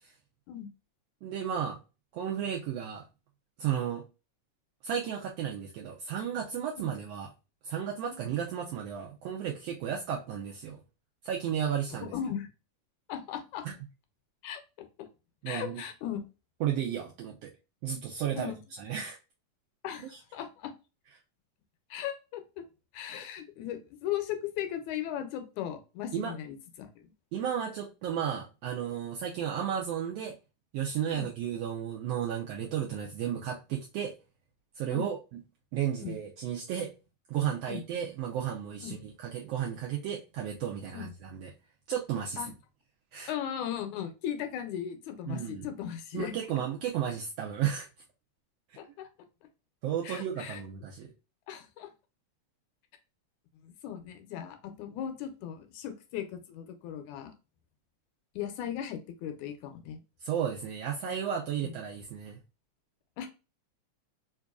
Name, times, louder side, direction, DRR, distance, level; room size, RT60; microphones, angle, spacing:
voice 1, 1.2-1.8 2.1-3.0 3.6-4.0 4.8-7.3 7.6-10.8 11.2-12.1 15.4-15.8 16.6-17.5 17.8-18.5 18.8-19.2 26.1-26.3 27.3-30.4 30.7-34.1 34.8-35.2 35.7-36.9 37.3-41.5 41.9-42.4 43.1-43.3 45.3-45.7 46.1-47.9 49.8-51.1 60.2-62.4, right 9 dB, 80° right, -1 dB, 1.4 m, -33 dB
voice 2, 12.0-12.5 13.1-13.7 14.4-14.9 15.5-16.2 18.4-18.6 19.8-20.7 21.9-22.6 22.9-27.1 31.1-31.3 34.9-35.1 36.0-36.2 37.7-37.8 38.8-39.0 40.9-41.1 42.4-42.5 43.3-46.3 48.8-49.1 50.0-50.6 51.5-51.9 53.6-57.3 58.4-60.0 61.6-61.7 63.2-63.3, left 10 dB, 80° left, 7 dB, 1.9 m, -37 dB
4.7 x 2.5 x 2.2 m, 0.30 s
omnidirectional pair, 3.4 m